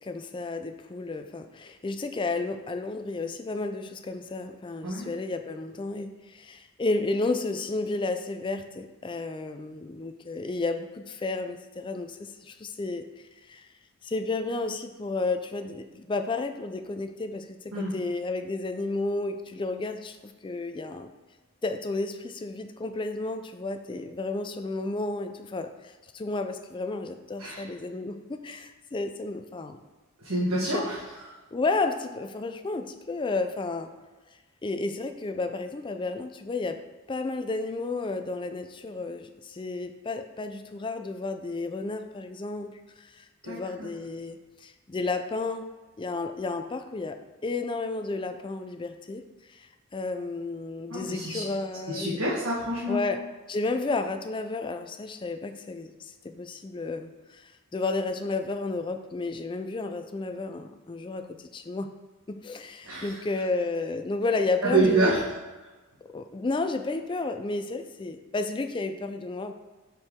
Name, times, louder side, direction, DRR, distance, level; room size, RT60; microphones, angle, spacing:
voice 1, 0.0-13.0 13.5-13.7 14.0-21.1 21.6-29.8 30.7-30.9 31.5-33.9 34.6-36.8 37.1-45.7 46.0-47.2 47.4-49.2 49.5-52.2 52.9-53.2 53.5-61.9 62.3-65.2 66.1-69.5, left 3 dB, 25° left, 7 dB, 0.3 m, -32 dB
voice 2, 30.2-31.3 43.4-43.9 50.9-51.4 51.9-53.0 62.8-63.1 64.6-65.2, right 2 dB, 75° right, -7 dB, 1.4 m, -27 dB
7.9 x 4.5 x 3.6 m, 1.3 s
head